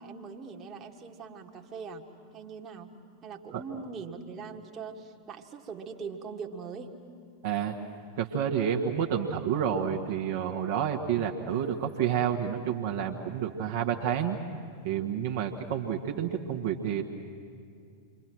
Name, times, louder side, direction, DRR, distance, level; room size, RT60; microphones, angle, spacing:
voice 1, 0.0-2.9 3.2-6.9, right 5 dB, 25° right, 2 dB, 1.9 m, -41 dB
voice 2, 7.4-7.7 8.2-14.4 14.8-17.0, right 8 dB, 50° right, 1 dB, 1.7 m, -29 dB
28.0 x 24.5 x 6.2 m, 2.4 s
figure-of-eight pair, 90°, 0 cm